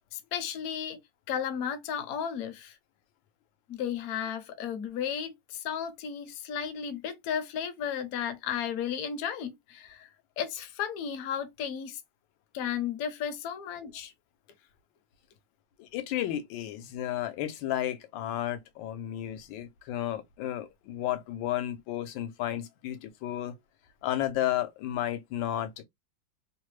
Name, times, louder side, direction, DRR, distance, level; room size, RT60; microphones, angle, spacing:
voice 1, 0.1-1.0 1.3-2.8 3.7-10.1 10.4-12.0 12.5-14.1, left 8 dB, 65° left, 0.9 m, -34 dB
voice 2, 15.8-23.6 24.0-25.8, left 12 dB, 85° left, 1.3 m, -33 dB
3.1 x 2.1 x 3.1 m
omnidirectional pair, 2.0 m